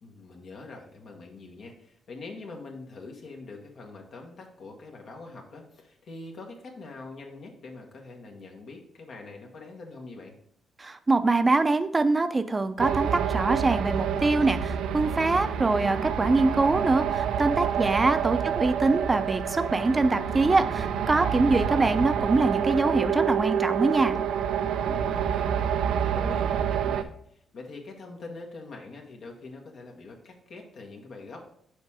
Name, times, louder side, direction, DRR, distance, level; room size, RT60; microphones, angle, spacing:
voice 1, 0.0-10.4 17.8-18.1 18.4-18.5 24.8-31.4, left 3 dB, 65° left, 1 dB, 1.4 m, -44 dB
voice 2, 10.8-24.2, right 3 dB, 25° right, 11 dB, 0.6 m, -24 dB
sound 1, 12.8-27.0, right 8 dB, 85° right, 0.4 m, -28 dB
6.5 x 4.4 x 4.8 m, 0.68 s
cardioid pair, 80°, 0 cm